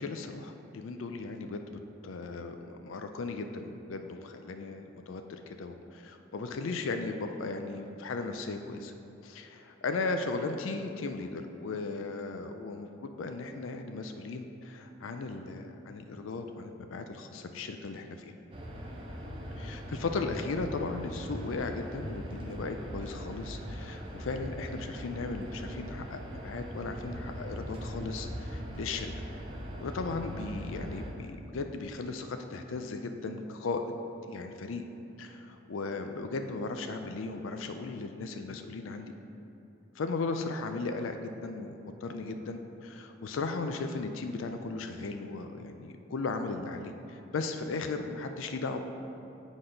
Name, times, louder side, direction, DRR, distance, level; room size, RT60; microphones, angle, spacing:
voice 1, 0.0-1.6 2.0-8.9 9.2-18.3 19.6-29.1 29.8-34.0 34.3-34.8 35.2-39.1 40.0-48.8, left 3 dB, 80° left, 6 dB, 0.4 m, -36 dB
sound 1, 18.5-31.1, equal, 30° right, 0.6 m, -40 dB
7.7 x 4.1 x 5.1 m, 2.9 s
head